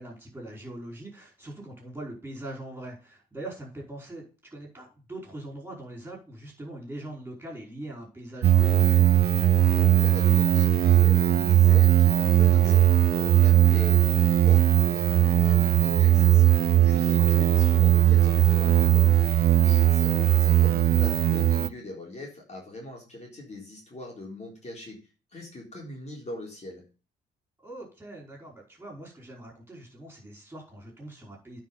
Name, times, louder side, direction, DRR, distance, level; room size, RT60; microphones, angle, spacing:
voice 1, 0.0-4.2 4.5-8.8 12.5-12.9 17.3-17.5 27.6-31.6, right 1 dB, 10° right, -2 dB, 5.3 m, -42 dB
sound 1, 8.4-21.7, right 13 dB, 50° right, 0.5 m, -19 dB
voice 2, 9.7-12.8 13.1-19.1 19.6-25.0 25.3-26.8, left 2 dB, 35° left, -1 dB, 3.8 m, -42 dB
9.5 x 5.0 x 7.1 m, 0.35 s
cardioid pair, 90°, 20 cm